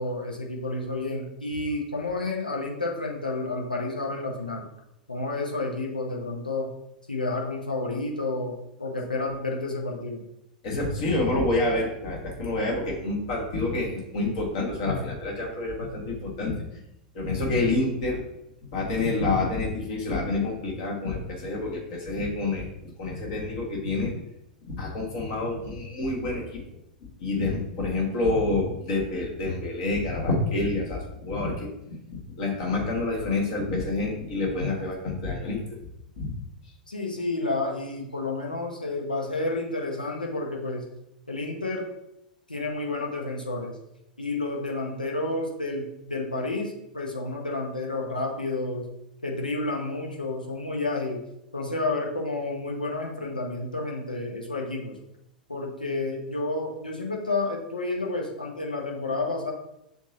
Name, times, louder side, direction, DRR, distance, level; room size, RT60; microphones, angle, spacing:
voice 1, 0.0-4.6 5.1-6.7 7.1-8.5 8.8-10.2 36.9-40.8 41.3-41.9 42.5-43.7 44.2-48.8 49.2-51.2 51.5-54.9 55.5-59.5, left 2 dB, 85° left, 0 dB, 0.9 m, -30 dB
voice 2, 10.6-16.5 17.1-18.2 18.7-24.1 24.6-26.6 27.2-35.6 36.2-36.3, left 2 dB, 50° left, -2 dB, 1.5 m, -28 dB
7.0 x 2.7 x 2.9 m, 0.84 s
figure-of-eight pair, 90°, 5 cm